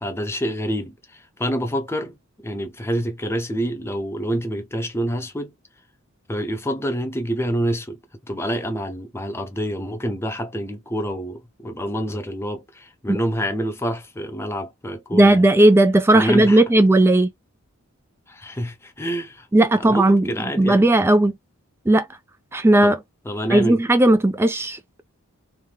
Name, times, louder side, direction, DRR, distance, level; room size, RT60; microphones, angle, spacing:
voice 1, 0.0-2.2 2.4-5.5 6.3-8.0 8.3-15.5 16.1-16.6 18.3-19.5 19.8-20.9 22.8-22.9 23.2-23.8, equal, 10° left, 0.7 m, -27 dB
voice 2, 15.1-17.3 19.5-20.3 20.6-21.3 21.9-22.1 22.5-23.0 23.5-24.8, right 1 dB, 10° right, 0.3 m, -15 dB
3.3 x 3.2 x 3.3 m
head